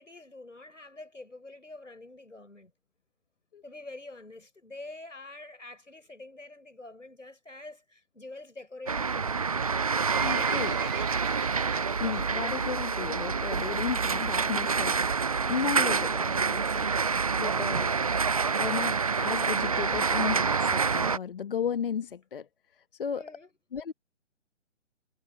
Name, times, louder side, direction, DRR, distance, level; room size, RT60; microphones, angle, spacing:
voice 1, 0.0-2.7 3.6-9.5 23.1-23.5, left 2 dB, 80° left, 6.8 m, -46 dB
sound 1, 8.9-21.2, right 5 dB, 30° right, 0.5 m, -27 dB
Livestock farm animals working animals, 9.7-12.3 12.6-12.9 13.2-13.3 14.0-14.1 14.4-14.5 14.6-14.7 15.3-15.5 16.1-16.2 16.4-16.5 16.7-16.8 17.0-17.1 17.6-17.7 18.2-18.3 18.7-18.8, right 8 dB, 50° right, 3.3 m, -39 dB
voice 2, 10.2-10.8 12.0-15.0 15.5-18.2 18.6-23.2 23.7-23.9, left 7 dB, 45° left, 1.2 m, -34 dB
figure-of-eight pair, 140°, 37 cm